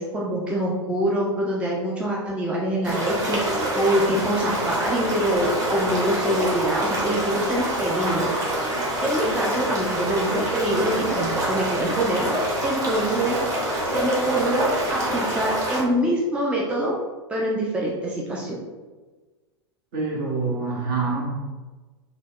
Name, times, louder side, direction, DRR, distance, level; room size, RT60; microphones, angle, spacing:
voice 1, 0.0-8.4 8.7-13.4 13.8-16.9 17.3-18.5, right 1 dB, 10° right, -3 dB, 0.4 m, -25 dB
sound 1, 2.8-15.8, right 1 dB, 25° right, 1.0 m, -26 dB
voice 2, 19.9-21.5, right 4 dB, 50° right, -3 dB, 1.0 m, -26 dB
4.0 x 2.1 x 2.9 m, 1.3 s
figure-of-eight pair, 90°, 14 cm